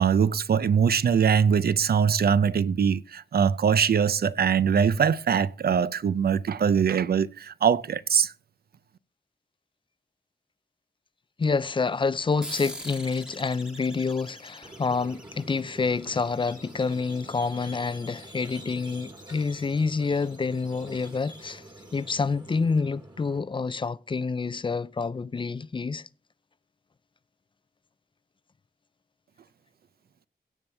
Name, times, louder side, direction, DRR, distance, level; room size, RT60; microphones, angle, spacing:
voice 1, 0.0-8.3, right 7 dB, 65° right, 0.5 m, -22 dB
voice 2, 11.4-21.6 21.9-26.0, left 4 dB, 30° left, 0.4 m, -28 dB
sound 1, 12.4-17.4, equal, 5° right, 1.3 m, -44 dB
Squeak, 14.6-23.4, right 1 dB, 25° right, 1.9 m, -47 dB
16.5 x 7.1 x 3.4 m
wide cardioid pair, 125°, 17 cm